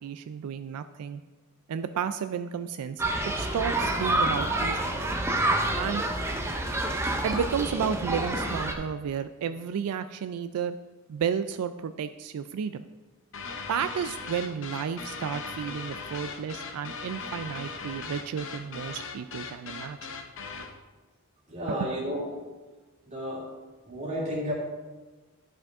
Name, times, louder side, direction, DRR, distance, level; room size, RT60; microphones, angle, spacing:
voice 1, 0.0-1.2 1.7-3.0 3.4-5.0 5.8-6.0 7.2-10.8 11.1-12.9 13.7-20.0 21.7-21.9, right 7 dB, 90° right, 11 dB, 0.3 m, -32 dB
sound 1, 3.0-8.7, right 1 dB, 10° right, 0.5 m, -28 dB
sound 2, 13.3-20.8, left 4 dB, 60° left, 0.7 m, -39 dB
voice 2, 21.5-22.3 23.1-23.5 23.8-24.5, equal, 30° right, -4 dB, 2.1 m, -32 dB
11.5 x 5.1 x 3.6 m, 1.2 s
head